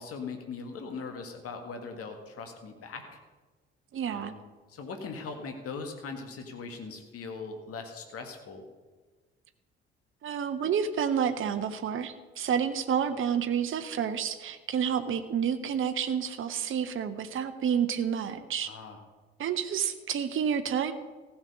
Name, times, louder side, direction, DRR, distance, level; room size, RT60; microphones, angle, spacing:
voice 1, 0.0-3.2 4.1-4.4 4.7-8.6 18.6-19.0, left 4 dB, 45° left, 5 dB, 1.8 m, -40 dB
voice 2, 3.9-4.3 10.2-18.7 19.4-20.9, right 8 dB, 40° right, 9 dB, 1.0 m, -29 dB
15.0 x 6.0 x 6.6 m, 1.3 s
figure-of-eight pair, 45°, 31 cm